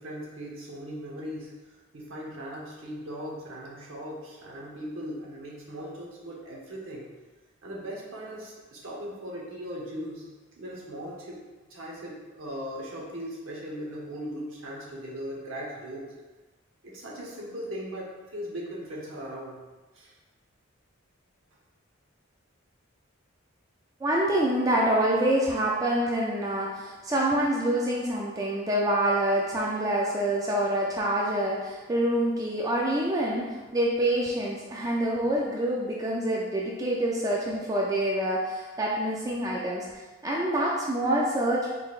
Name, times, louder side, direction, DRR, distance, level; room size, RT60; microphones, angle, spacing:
voice 1, 0.0-7.1 7.6-10.3 10.6-11.4 11.7-16.1 16.8-19.6 19.9-20.1, equal, 70° right, -3 dB, 0.9 m, -38 dB
voice 2, 24.0-39.9 40.2-41.7, right 1 dB, 15° right, -3 dB, 0.3 m, -26 dB
3.8 x 3.8 x 2.4 m, 1.3 s
head